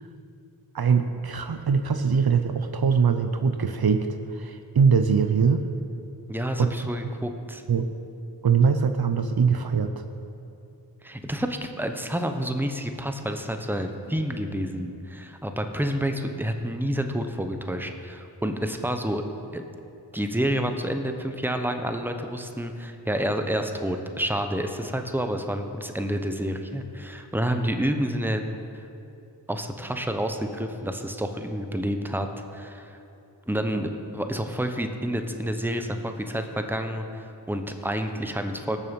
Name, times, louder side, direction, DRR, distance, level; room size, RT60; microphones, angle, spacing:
voice 1, 0.7-5.6 6.6-6.7 7.7-7.9 8.4-10.0, right 6 dB, 60° right, 8 dB, 0.7 m, -22 dB
voice 2, 6.3-7.6 11.0-19.2 19.5-19.6 20.1-28.4 29.5-32.3 32.5-33.0 33.5-38.8, equal, 5° right, 6 dB, 1.1 m, -29 dB
18.0 x 7.0 x 5.4 m, 2.7 s
cardioid pair, 40°, 43 cm